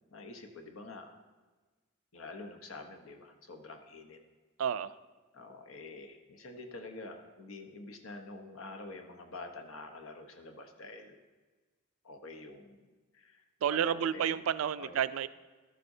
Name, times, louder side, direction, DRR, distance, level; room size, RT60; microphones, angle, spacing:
voice 1, 0.1-1.1 2.1-4.2 5.3-11.2 12.0-12.9 13.1-13.4 13.7-14.4 14.8-15.0, left 2 dB, 80° left, 5 dB, 0.9 m, -47 dB
voice 2, 4.6-4.9 13.6-15.3, right 8 dB, 85° right, 15 dB, 0.3 m, -30 dB
13.5 x 7.5 x 2.7 m, 1.3 s
head